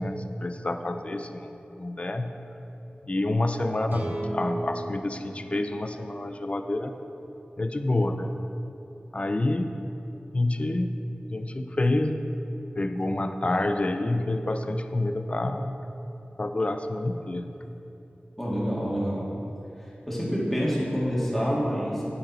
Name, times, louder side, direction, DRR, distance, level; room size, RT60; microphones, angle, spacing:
voice 1, 0.0-2.3 3.0-6.9 7.6-8.3 9.1-9.7 10.3-10.9 11.3-12.1 12.8-15.8 16.4-17.5, left 2 dB, 35° left, 8 dB, 0.5 m, -28 dB
sound 1, 3.9-7.2, right 1 dB, 85° right, 1.9 m, -36 dB
voice 2, 18.4-19.3 20.1-22.0, equal, 5° left, -6 dB, 2.4 m, -27 dB
9.1 x 9.0 x 4.3 m, 2.9 s
wide cardioid pair, 70°, 3 cm